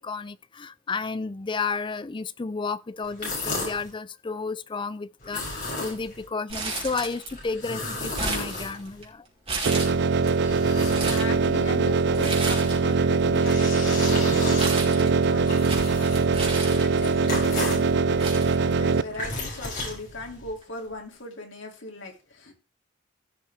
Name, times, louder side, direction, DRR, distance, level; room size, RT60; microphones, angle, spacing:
voice 1, 0.0-9.3, left 4 dB, 25° left, 0.4 m, -32 dB
sound 1, 3.0-3.9 5.2-6.3 7.3-9.1 9.8-11.6 13.0-17.9 18.9-20.5, left 2 dB, 45° left, 6.3 m, -34 dB
Crumpling crinkling, 6.5-7.5 7.8-9.0 9.5-10.3 10.7-11.3 12.1-12.9 13.2-17.3 17.8-17.9 18.2-19.2 19.6-19.7 20.6-20.9, right 3 dB, 30° right, 3.9 m, -33 dB
sound 2, 9.7-19.0, right 4 dB, 60° right, 0.5 m, -22 dB
voice 2, 10.8-15.9 16.5-22.5, left 2 dB, 70° left, 2.7 m, -39 dB
16.0 x 6.5 x 3.5 m
head